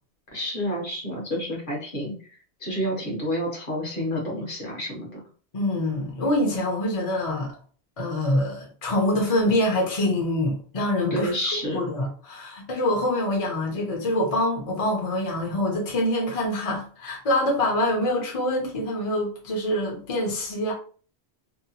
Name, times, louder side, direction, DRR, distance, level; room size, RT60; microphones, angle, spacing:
voice 1, 0.3-2.1 2.6-5.2 11.1-11.8, equal, 55° left, 1.0 m, -29 dB
voice 2, 5.5-7.5 8.0-11.3 11.7-20.7, left 1 dB, 40° left, 0.6 m, -25 dB
2.7 x 2.1 x 2.7 m
omnidirectional pair, 1.1 m